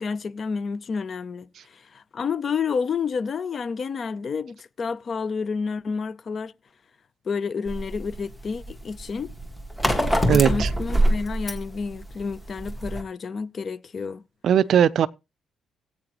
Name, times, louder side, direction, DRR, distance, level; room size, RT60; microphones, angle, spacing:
voice 1, 0.0-6.5 7.2-9.3 10.2-14.2, left 5 dB, 35° left, 0.5 m, -30 dB
sound 1, 7.7-13.0, equal, 5° left, 1.6 m, -25 dB
voice 2, 10.3-10.7 14.4-15.1, right 9 dB, 50° right, 0.5 m, -18 dB
18.5 x 8.7 x 3.0 m
cardioid pair, 175°, 0 cm